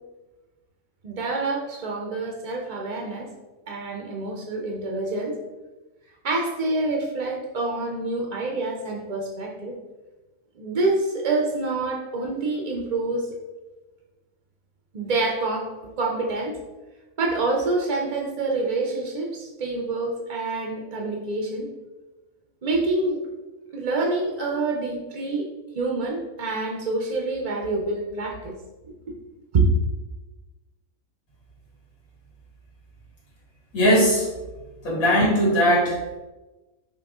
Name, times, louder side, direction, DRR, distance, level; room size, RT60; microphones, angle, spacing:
voice 1, 1.0-3.3 3.7-5.3 6.2-9.8 10.6-13.3 14.9-15.7 16.0-16.6 17.2-21.7 22.6-23.2 23.7-25.5 25.7-28.5 28.8-28.9 29.5-29.7, right 3 dB, 55° right, 0 dB, 0.4 m, -26 dB
voice 2, 33.7-34.3 34.8-36.0, equal, 85° left, -6 dB, 2.2 m, -19 dB
5.6 x 2.3 x 3.6 m, 1.1 s
omnidirectional pair, 1.5 m